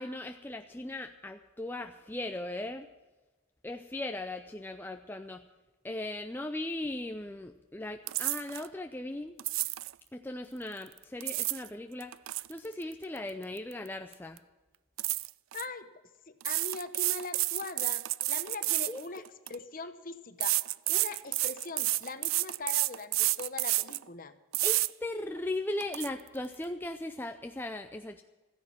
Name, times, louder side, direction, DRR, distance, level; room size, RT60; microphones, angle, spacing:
voice 1, 0.0-2.9 3.6-5.4 5.8-9.4 10.1-12.1 12.5-14.4 18.9-19.0 24.6-28.2, left 1 dB, 10° left, 5 dB, 0.4 m, -38 dB
sound 1, 8.1-8.7 9.4-9.9 11.0-11.7 12.0-13.9 14.1-14.4 15.0-15.6 16.4-19.6 20.4-24.0 24.5-24.9 25.4-25.5 25.8-26.1, right 19 dB, 70° right, 0.3 m, -30 dB
voice 2, 15.5-15.9 16.3-19.2 19.5-20.6 20.9-24.3, left 3 dB, 40° left, 10 dB, 0.9 m, -41 dB
14.0 x 10.5 x 7.2 m, 1.2 s
head